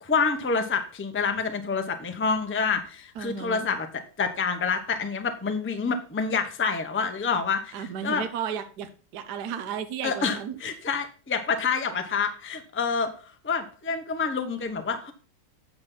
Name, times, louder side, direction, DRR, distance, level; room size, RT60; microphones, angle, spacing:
voice 1, 0.0-3.9 4.2-8.2 10.0-13.1 13.4-15.1, left 5 dB, 15° left, 7 dB, 0.5 m, -27 dB
voice 2, 3.2-3.7 7.7-10.6, right 8 dB, 65° right, 9 dB, 1.2 m, -34 dB
8.8 x 7.2 x 3.9 m, 0.38 s
omnidirectional pair, 2.1 m